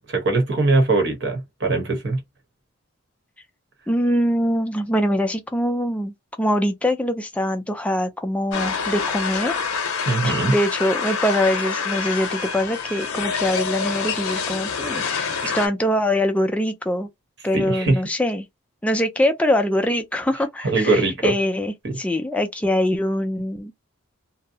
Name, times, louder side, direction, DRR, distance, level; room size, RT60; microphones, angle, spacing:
voice 1, 0.1-2.2 10.1-10.5 15.4-15.6 17.5-18.0 20.6-21.3 21.8-21.9, right 3 dB, 55° right, 1.0 m, -21 dB
voice 2, 3.9-9.5 10.2-17.1 17.4-18.5 18.8-23.7, left 1 dB, 5° left, 0.3 m, -23 dB
sound 1, 8.5-15.7, left 5 dB, 90° left, 0.7 m, -26 dB
2.6 x 2.0 x 2.6 m
head